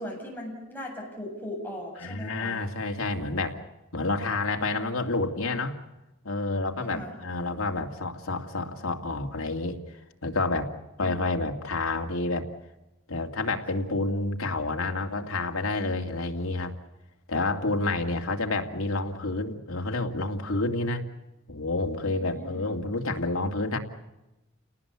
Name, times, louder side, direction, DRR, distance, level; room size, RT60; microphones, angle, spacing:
voice 1, 0.0-2.6 6.9-7.1 11.0-11.2 22.0-22.7, left 1 dB, 10° left, -1 dB, 7.7 m, -38 dB
voice 2, 2.0-3.6 3.9-5.8 6.2-10.7 11.0-12.5 13.1-16.7 17.3-21.0 21.5-23.8, left 2 dB, 85° left, 3 dB, 2.5 m, -29 dB
30.0 x 19.0 x 8.2 m, 0.98 s
head